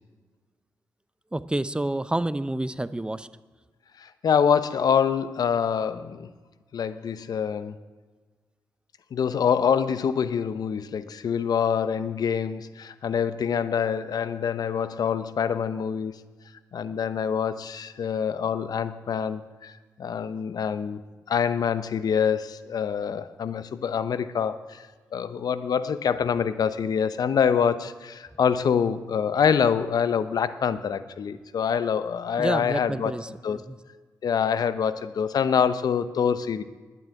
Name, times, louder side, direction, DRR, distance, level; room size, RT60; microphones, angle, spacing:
voice 1, 1.3-3.3 32.4-33.8, right 1 dB, 15° right, 15 dB, 0.6 m, -29 dB
voice 2, 4.0-6.3 6.7-7.8 9.1-16.1 16.7-19.7 20.0-21.0 21.3-24.8 25.1-33.1 33.4-33.6 34.2-36.6, left 7 dB, 65° left, 13 dB, 0.8 m, -25 dB
11.5 x 9.6 x 9.1 m, 1.4 s
cardioid pair, 70°, 7 cm